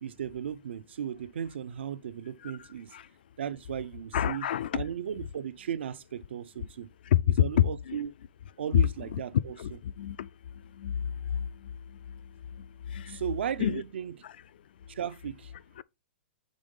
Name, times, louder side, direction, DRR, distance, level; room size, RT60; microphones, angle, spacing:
voice 1, 0.0-3.0 3.4-4.4 4.7-6.9 7.4-8.1 8.6-9.6 13.1-14.1 14.9-15.5, right 9 dB, 80° right, 0.6 m, -36 dB
voice 2, 2.4-3.1 4.1-4.8 7.1-8.0 8.7-9.2 9.6-10.3 10.8-10.9 12.9-13.2 13.6-13.8 14.2-14.3 15.8-15.9, left 11 dB, 55° left, 0.3 m, -27 dB
5.2 x 3.6 x 5.3 m
hypercardioid pair, 170°, 6 cm